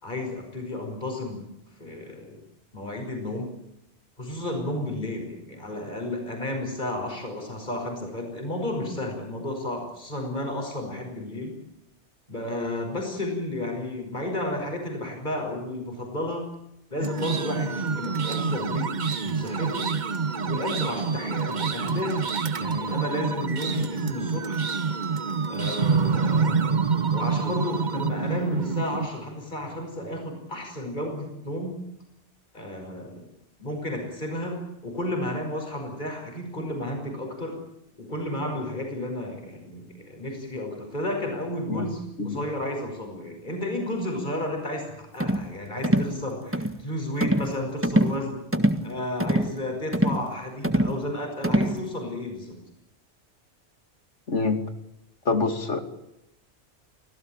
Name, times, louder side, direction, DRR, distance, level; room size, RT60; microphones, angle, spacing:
voice 1, 0.0-1.5 1.8-2.4 2.7-3.5 4.2-11.6 12.3-16.4 16.9-19.9 20.5-22.3 22.6-24.6 25.5-26.8 27.1-31.8 32.5-33.3 33.6-37.6 38.0-48.4 48.8-52.6, left 1 dB, 40° left, 2 dB, 5.9 m, -32 dB
sound 1, 17.0-29.1, right 5 dB, 40° right, 1.1 m, -27 dB
sound 2, 45.2-45.5 45.8-46.1 46.5-46.8 47.2-47.5 47.8-48.2 48.5-48.8 49.2-49.5 49.9-50.3 50.6-51.0 51.4-51.8, right 1 dB, 10° right, 1.5 m, -23 dB
voice 2, 54.3-54.6 55.2-55.8, left 4 dB, 85° left, 8 dB, 2.8 m, -25 dB
25.5 x 16.5 x 8.9 m, 0.84 s
omnidirectional pair, 1.2 m